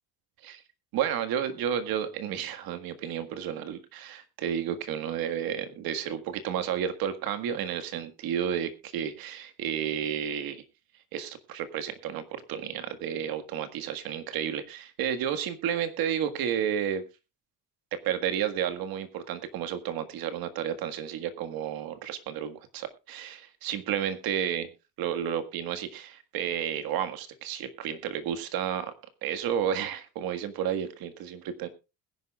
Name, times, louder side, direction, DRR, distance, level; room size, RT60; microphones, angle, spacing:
voice 1, 0.9-10.6 11.1-17.0 17.9-24.7 25.0-28.9 29.2-31.7, right 9 dB, 70° right, 9 dB, 1.8 m, -31 dB
21.0 x 10.5 x 2.4 m, 0.28 s
cardioid pair, 165°, 37 cm